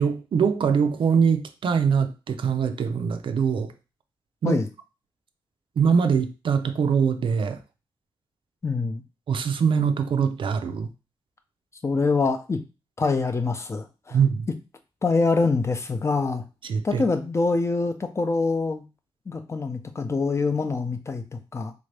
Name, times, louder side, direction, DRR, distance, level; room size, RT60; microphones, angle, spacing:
voice 1, 0.0-3.7 4.4-4.6 5.8-7.6 9.3-10.9 14.1-14.5 16.7-17.0, right 6 dB, 70° right, 8 dB, 0.4 m, -23 dB
voice 2, 8.6-9.0 11.8-12.6 13.0-14.2 15.0-16.4 16.8-18.8 19.3-21.7, left 3 dB, 30° left, 7 dB, 0.5 m, -25 dB
3.5 x 2.6 x 3.3 m, 0.30 s
wide cardioid pair, 140°, 9 cm